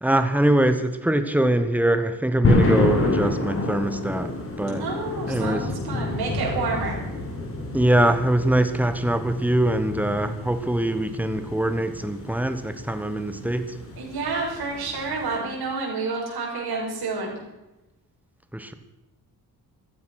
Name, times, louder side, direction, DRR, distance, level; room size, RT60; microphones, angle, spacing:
voice 1, 0.0-4.8 5.3-5.7 7.7-13.8 18.5-18.7, right 1 dB, 5° right, 9 dB, 1.2 m, -23 dB
sound 1, 2.4-15.4, left 2 dB, 35° left, 3.9 m, -28 dB
voice 2, 4.8-7.0 14.0-17.4, right 3 dB, 85° right, -3 dB, 6.5 m, -29 dB
15.5 x 13.5 x 6.4 m, 1.0 s
wide cardioid pair, 155°, 37 cm